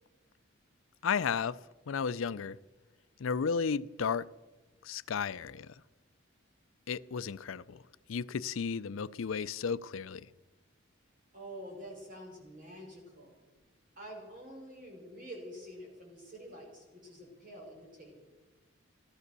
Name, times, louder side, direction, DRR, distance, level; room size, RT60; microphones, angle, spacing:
voice 1, 1.0-1.6 1.9-2.6 3.2-4.3 4.8-5.7 6.9-7.8 8.1-10.3, left 6 dB, 85° left, 0.5 m, -33 dB
voice 2, 11.3-13.3 14.0-18.1, equal, 40° right, 5.4 m, -47 dB
16.5 x 12.0 x 6.8 m
head